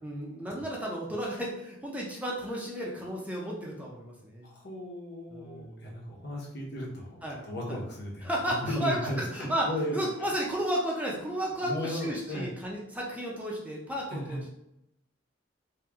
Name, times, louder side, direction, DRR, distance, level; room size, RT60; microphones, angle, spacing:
voice 1, 0.0-4.5 5.3-6.1 7.2-7.8 8.2-14.5, right 1 dB, 10° right, -3 dB, 0.6 m, -33 dB
voice 2, 4.4-10.1 11.6-12.5 14.1-14.4, equal, 60° left, -2 dB, 1.1 m, -36 dB
3.0 x 3.0 x 3.6 m, 0.82 s
head